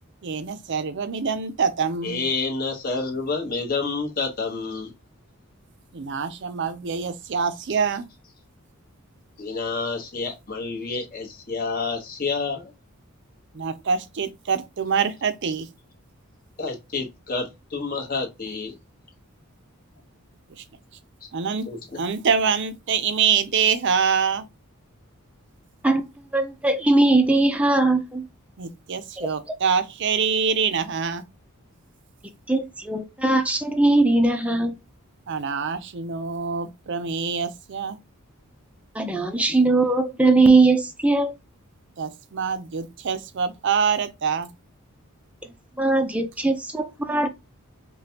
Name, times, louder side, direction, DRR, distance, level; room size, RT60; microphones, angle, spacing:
voice 1, 0.2-2.2 5.9-8.1 13.5-15.7 20.6-20.7 21.3-21.7 22.0-24.5 28.6-31.2 35.3-38.0 42.0-44.5, right 6 dB, 55° right, 0.5 m, -25 dB
voice 2, 2.0-4.9 9.4-12.7 16.6-18.7 21.7-22.0, left 4 dB, 40° left, 1.1 m, -29 dB
voice 3, 25.8-28.3 29.2-29.3 32.5-34.8 38.9-41.3 45.8-47.3, right 2 dB, 5° right, 0.5 m, -20 dB
5.0 x 2.2 x 2.8 m
head